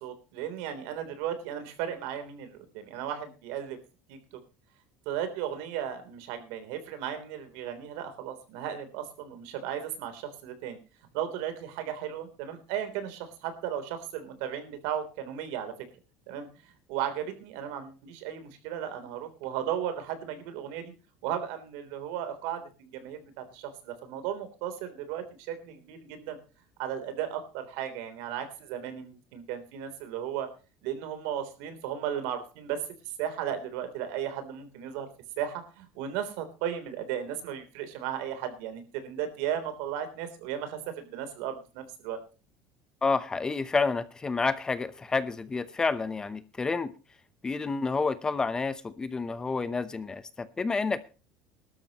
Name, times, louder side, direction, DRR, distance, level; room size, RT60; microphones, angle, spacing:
voice 1, 0.0-3.8 4.1-4.2 5.1-10.8 11.1-15.7 16.3-20.9 21.2-26.4 26.8-30.5 30.8-32.8 33.2-35.1 35.4-42.2, right 9 dB, 75° right, 9 dB, 3.5 m, -35 dB
voice 2, 43.0-46.9 47.4-51.0, left 4 dB, 15° left, 14 dB, 0.8 m, -29 dB
20.0 x 12.5 x 3.0 m, 0.34 s
cardioid pair, 150°, 5 cm